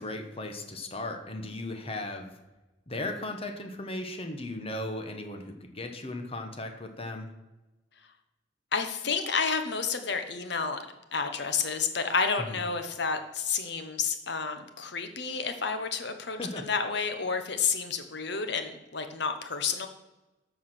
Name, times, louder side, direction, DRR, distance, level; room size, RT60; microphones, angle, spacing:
voice 1, 0.0-2.4 2.9-7.3 12.5-12.6 16.4-16.7, left 2 dB, 30° left, 5 dB, 1.2 m, -36 dB
voice 2, 8.7-10.8 11.1-19.9, left 5 dB, 65° left, 7 dB, 1.1 m, -30 dB
13.5 x 4.8 x 6.2 m, 1.1 s
head